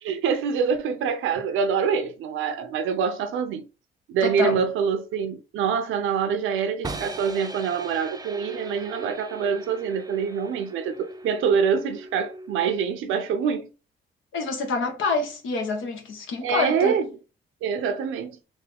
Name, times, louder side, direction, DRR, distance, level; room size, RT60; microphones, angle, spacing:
voice 1, 0.0-3.6 4.1-13.7 16.4-17.1 17.6-18.4, right 6 dB, 85° right, 0.7 m, -25 dB
voice 2, 4.2-4.6 14.3-17.0, left 3 dB, 80° left, 1.2 m, -27 dB
sound 1, 6.8-12.8, right 2 dB, 20° right, 0.5 m, -39 dB
3.5 x 2.7 x 3.4 m
cardioid pair, 90°, 20 cm